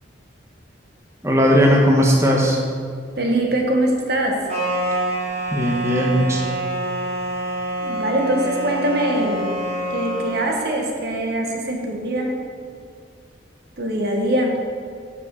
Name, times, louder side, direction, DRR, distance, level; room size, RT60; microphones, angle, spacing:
voice 1, 1.2-2.6 5.5-6.4, equal, 15° right, -2 dB, 1.1 m, -17 dB
voice 2, 3.2-4.4 7.8-9.4 9.9-12.3 13.8-14.5, right 1 dB, 60° right, 1 dB, 1.6 m, -22 dB
sound 1, 4.5-10.5, right 1 dB, 35° right, 2.9 m, -26 dB
8.4 x 7.5 x 6.9 m, 2.1 s
head